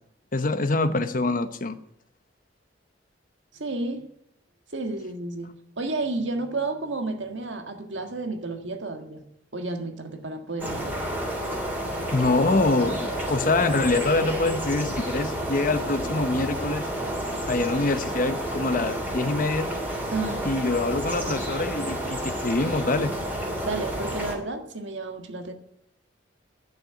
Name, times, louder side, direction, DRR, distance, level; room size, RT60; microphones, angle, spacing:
voice 1, 0.3-1.8 12.1-16.9 17.5-19.7 20.4-23.1, left 2 dB, 45° left, 10 dB, 0.9 m, -25 dB
voice 2, 3.5-4.1 4.7-9.2 9.5-11.0 20.1-20.4 23.7-25.5, right 3 dB, 85° right, 5 dB, 1.7 m, -31 dB
sound 1, 10.6-24.3, equal, 10° right, 3.1 m, -30 dB
11.5 x 6.6 x 9.3 m, 0.74 s
head